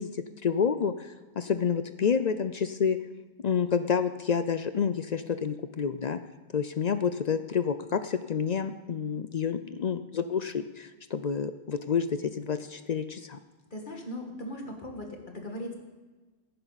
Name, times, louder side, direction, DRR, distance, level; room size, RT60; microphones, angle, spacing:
voice 1, 0.0-3.0 3.4-6.2 6.5-13.4, left 6 dB, 60° left, 11 dB, 0.4 m, -29 dB
voice 2, 13.7-15.7, left 1 dB, 40° left, 2 dB, 2.0 m, -38 dB
17.0 x 10.0 x 4.1 m, 1.3 s
omnidirectional pair, 1.3 m